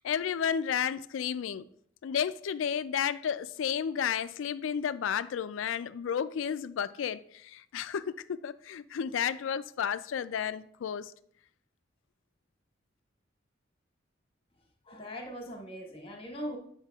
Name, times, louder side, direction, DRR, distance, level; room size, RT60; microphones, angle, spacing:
voice 1, 0.0-1.7 2.0-11.1, left 8 dB, 85° left, 0.3 m, -32 dB
voice 2, 14.9-16.6, equal, 30° left, 1.3 m, -40 dB
9.6 x 5.7 x 2.3 m
head